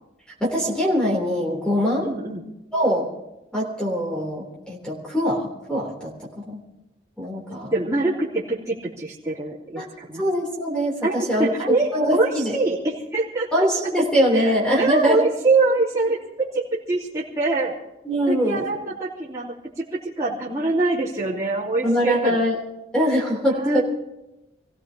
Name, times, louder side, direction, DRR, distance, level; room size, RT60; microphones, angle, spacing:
voice 1, 0.4-2.1 2.7-3.1 3.5-6.6 7.2-7.7 9.8-9.9 10.2-11.5 11.9-12.5 13.5-15.3 18.0-18.7 21.8-22.5 22.9-23.8, equal, 5° left, -3 dB, 3.3 m, -23 dB
voice 2, 2.0-2.4 7.7-10.2 11.0-13.5 13.8-13.9 14.3-17.8 18.3-22.4 23.5-23.8, right 3 dB, 15° right, -8 dB, 3.2 m, -24 dB
27.5 x 16.5 x 2.9 m, 0.92 s
head